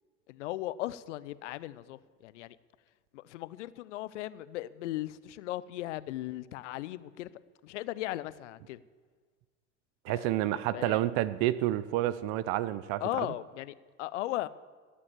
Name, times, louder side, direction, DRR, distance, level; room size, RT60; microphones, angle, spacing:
voice 1, 0.3-2.6 3.1-7.3 7.6-8.8 10.1-11.0 13.0-14.5, left 16 dB, 70° left, 18 dB, 0.7 m, -37 dB
voice 2, 10.0-13.0, right 14 dB, 55° right, 16 dB, 0.6 m, -29 dB
15.5 x 8.5 x 7.4 m, 1.5 s
hypercardioid pair, 75°, 37 cm